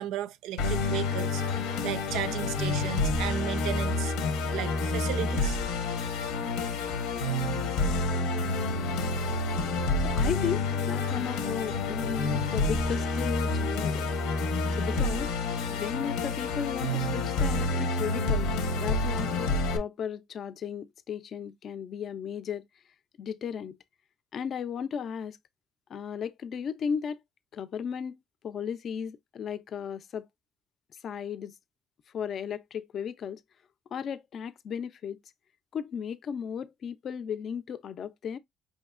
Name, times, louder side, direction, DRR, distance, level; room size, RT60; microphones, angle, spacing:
voice 1, 0.0-1.4 1.8-4.1 4.5-5.6, right 12 dB, 75° right, 0.4 m, -34 dB
Musical instrument, 0.6-19.8, left 3 dB, 90° left, 0.8 m, -28 dB
voice 2, 10.1-14.1 14.8-15.3 15.7-22.6 23.2-23.8 24.3-25.4 25.9-27.2 27.5-28.2 28.4-30.3 31.0-31.5 32.1-33.4 33.9-35.2 35.7-38.4, left 7 dB, 45° left, 0.4 m, -35 dB
5.3 x 2.8 x 2.3 m
cardioid pair, 125°, 0 cm